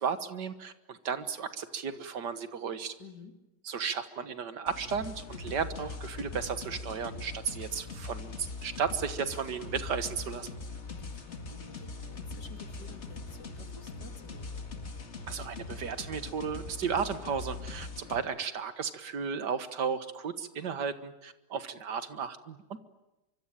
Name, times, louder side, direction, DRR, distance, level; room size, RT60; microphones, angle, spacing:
voice 1, 0.0-2.9 3.6-10.5 15.3-22.8, right 6 dB, 80° right, 11 dB, 2.1 m, -34 dB
voice 2, 3.0-3.3 10.9-14.6, left 4 dB, 75° left, 6 dB, 3.3 m, -51 dB
sound 1, 4.7-18.2, left 3 dB, 40° left, 2.3 m, -41 dB
25.0 x 24.5 x 8.9 m, 0.97 s
omnidirectional pair, 1.8 m